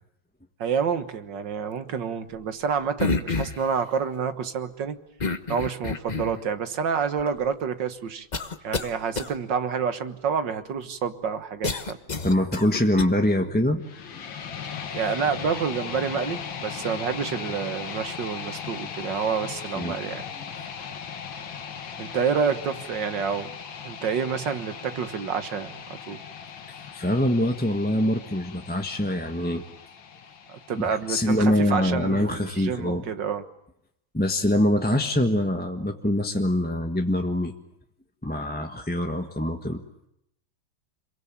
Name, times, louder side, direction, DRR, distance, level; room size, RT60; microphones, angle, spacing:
voice 1, 0.6-5.0 5.5-8.3 8.6-12.0 14.9-20.3 22.0-23.5 23.8-26.2 30.5-33.4, right 6 dB, 70° right, 10 dB, 2.1 m, -28 dB
sound 1, 3.0-3.7 5.2-6.4 7.2-7.3 8.3-8.9 9.2-9.3 11.6-13.1, left 3 dB, 25° left, 1.1 m, -28 dB
voice 2, 12.2-13.8 14.1-14.3 19.7-20.0 26.9-29.6 30.9-33.0 34.1-37.5 38.2-39.8, left 1 dB, 5° left, 4 dB, 1.2 m, -24 dB
sound 2, 13.8-31.8, left 7 dB, 90° left, 2.4 m, -38 dB
27.5 x 22.5 x 8.8 m, 0.79 s
omnidirectional pair, 2.0 m